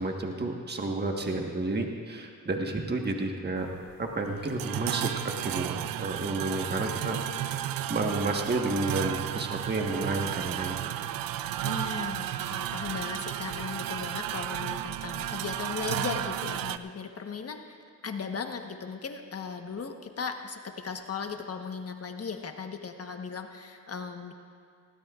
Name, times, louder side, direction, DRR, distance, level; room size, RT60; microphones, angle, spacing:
voice 1, 0.0-3.7 4.0-7.2 7.4-11.1, right 2 dB, 30° right, 2 dB, 1.4 m, -31 dB
sound 1, 3.6-16.8, right 12 dB, 85° right, 0.5 m, -33 dB
voice 2, 11.6-24.3, left 5 dB, 45° left, 5 dB, 1.2 m, -37 dB
19.0 x 16.5 x 2.5 m, 2.3 s
cardioid pair, 70°, 33 cm